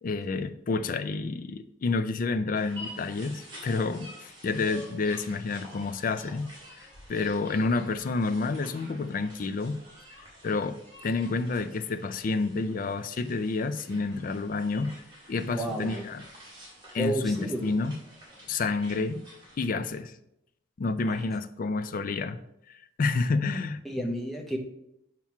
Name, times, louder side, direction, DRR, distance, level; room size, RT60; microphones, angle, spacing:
voice 1, 0.0-6.5 6.8-9.8 10.4-15.0 15.3-16.2 16.9-17.9 18.5-19.3 19.6-20.1 20.8-22.4 23.0-23.8, left 3 dB, 40° left, 11 dB, 0.4 m, -29 dB
sound 1, 2.5-19.7, equal, 25° right, 2.3 m, -49 dB
voice 2, 15.5-16.0 16.9-17.7 21.1-21.2 23.8-24.6, equal, ahead, 0 dB, 0.8 m, -31 dB
7.1 x 3.0 x 5.8 m, 0.81 s
head